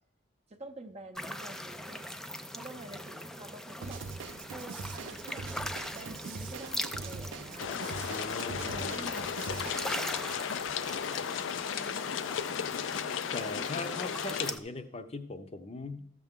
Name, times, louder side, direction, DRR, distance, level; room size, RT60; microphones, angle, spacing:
voice 1, 0.5-2.1 2.5-4.0 4.5-7.8 8.7-11.3 11.8-12.3, right 2 dB, 35° right, 6 dB, 0.7 m, -48 dB
sound 1, 1.2-14.6, equal, 5° left, 0.4 m, -41 dB
Drum kit / Drum, 3.8-10.0, right 4 dB, 85° right, 0.4 m, -42 dB
sound 2, 7.6-14.5, left 7 dB, 85° left, 0.4 m, -35 dB
voice 2, 8.1-9.1 13.3-16.1, left 3 dB, 35° left, 9 dB, 0.7 m, -40 dB
14.0 x 6.8 x 3.6 m, 0.76 s
head